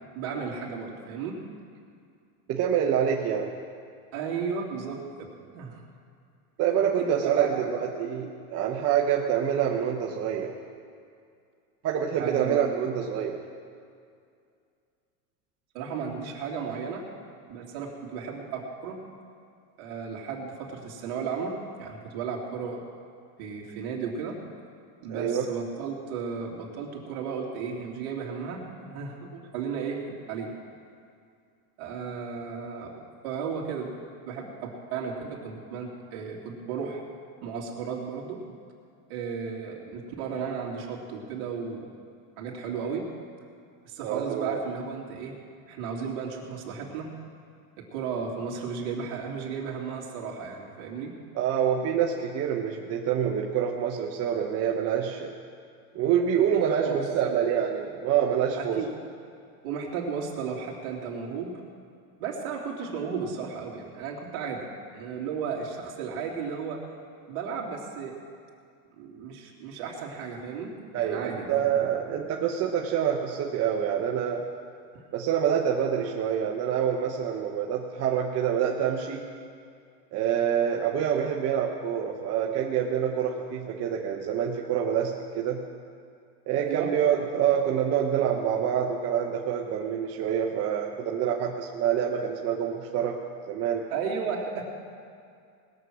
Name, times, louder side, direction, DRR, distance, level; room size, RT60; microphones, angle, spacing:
voice 1, 0.1-1.4 4.1-5.3 5.5-5.8 7.0-7.7 12.2-12.6 15.7-17.0 17.5-19.0 19.8-22.8 23.4-24.4 25.0-30.5 31.8-32.9 33.2-37.0 37.4-38.4 39.1-41.8 42.4-43.0 43.8-45.3 45.6-47.1 47.8-51.1 56.8-57.5 58.6-58.9 59.6-61.5 62.2-64.6 64.9-66.8 67.3-68.1 69.0-71.9 86.5-86.9 93.9-94.6, right 6 dB, 55° right, -2 dB, 2.9 m, -34 dB
voice 2, 2.5-3.5 6.6-10.5 11.8-13.4 25.1-25.4 44.0-44.6 51.3-55.3 55.9-58.8 70.9-74.5 75.1-79.3 80.1-85.6 86.5-93.2 93.5-93.8, right 8 dB, 30° right, -1 dB, 0.9 m, -26 dB
20.0 x 7.5 x 6.2 m, 2.3 s
supercardioid pair, 135°, 46 cm